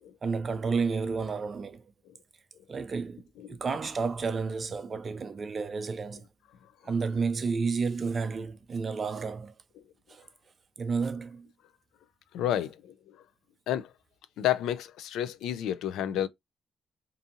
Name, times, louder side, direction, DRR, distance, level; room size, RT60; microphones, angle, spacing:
voice 1, 0.2-1.8 2.7-3.2 3.5-6.3 6.8-9.5 10.1-10.3 10.8-11.5, right 5 dB, 40° right, 0.4 m, -31 dB
voice 2, 12.3-13.2 13.7-13.9 14.4-16.3, left 11 dB, 85° left, 0.3 m, -30 dB
2.6 x 2.4 x 2.5 m
cardioid pair, 90°, 0 cm